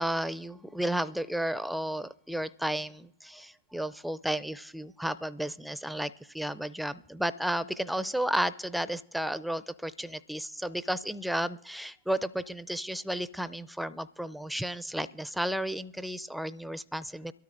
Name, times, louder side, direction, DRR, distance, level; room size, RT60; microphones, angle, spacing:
voice 1, 0.0-17.3, right 1 dB, ahead, 15 dB, 0.4 m, -33 dB
24.0 x 13.0 x 2.6 m, 0.79 s
hypercardioid pair, 100°, 0 cm